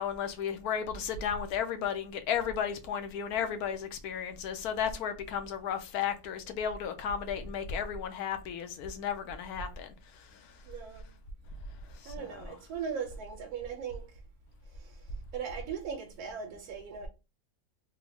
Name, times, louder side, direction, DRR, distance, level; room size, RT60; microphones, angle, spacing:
voice 1, 0.0-9.9 12.0-12.5, left 7 dB, 80° left, 1.1 m, -34 dB
voice 2, 10.7-11.1 12.0-14.2 14.7-17.1, right 7 dB, 80° right, 1.1 m, -39 dB
3.5 x 2.0 x 3.4 m
omnidirectional pair, 1.6 m